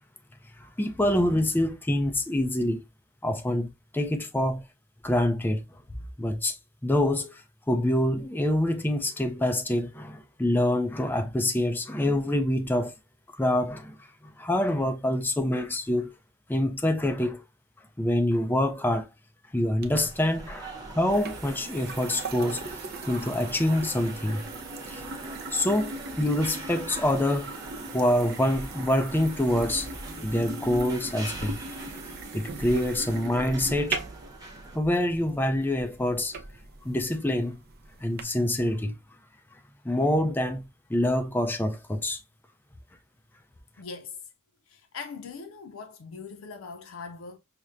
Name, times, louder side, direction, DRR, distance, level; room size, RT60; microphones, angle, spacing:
voice 1, 0.6-2.8 3.2-4.6 5.0-5.6 6.2-6.6 6.8-7.4 7.7-12.9 13.4-16.1 16.5-17.4 18.0-19.1 19.5-22.6 23.1-24.4 24.9-25.0 25.5-27.5 27.9-29.9 30.2-31.6 32.3-34.0 34.7-36.4 36.8-37.6 38.0-39.0 39.8-42.2, left 1 dB, 10° left, 0.4 m, -26 dB
sound 1, 19.8-34.8, right 2 dB, 20° right, 0.8 m, -43 dB
sound 2, 19.8-38.2, right 3 dB, 50° right, 0.6 m, -39 dB
voice 2, 43.8-44.3 44.7-47.4, left 5 dB, 85° left, 0.5 m, -41 dB
5.8 x 2.1 x 2.5 m
head